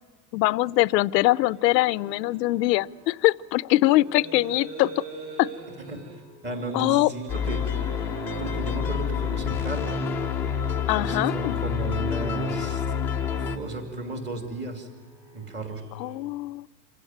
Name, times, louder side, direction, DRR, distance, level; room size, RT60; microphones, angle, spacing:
voice 1, 0.3-5.0 5.4-5.5 6.7-7.1 10.9-11.6 16.0-16.7, left 18 dB, 80° left, 19 dB, 0.7 m, -22 dB
sound 1, 1.2-16.2, right 3 dB, 40° right, 5.2 m, -44 dB
voice 2, 6.4-7.6 8.4-10.0 11.0-12.9 13.3-14.9 15.3-15.8, right 2 dB, 20° right, 5 dB, 2.8 m, -34 dB
sound 2, 7.3-13.6, left 6 dB, 5° left, 0.7 m, -28 dB
26.5 x 16.0 x 9.1 m, 1.5 s
supercardioid pair, 175°, 50 cm